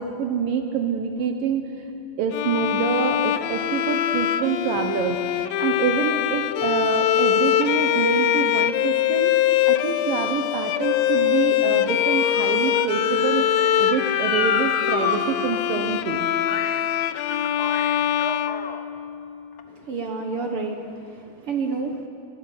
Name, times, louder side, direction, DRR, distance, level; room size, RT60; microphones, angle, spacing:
voice 1, 0.0-1.7 2.2-9.3 9.7-16.3, right 6 dB, 75° right, 4 dB, 2.7 m, -26 dB
Bowed string instrument, 2.3-19.3, left 11 dB, 85° left, 2.4 m, -23 dB
Motor vehicle (road) / Siren, 10.0-15.2 15.5-15.6 16.5-16.8 17.1-18.8 19.5-19.6, left 5 dB, 70° left, 0.9 m, -31 dB
voice 2, 19.7-22.1, right 4 dB, 60° right, 3 dB, 1.6 m, -29 dB
23.0 x 17.5 x 7.8 m, 2.6 s
omnidirectional pair, 4.0 m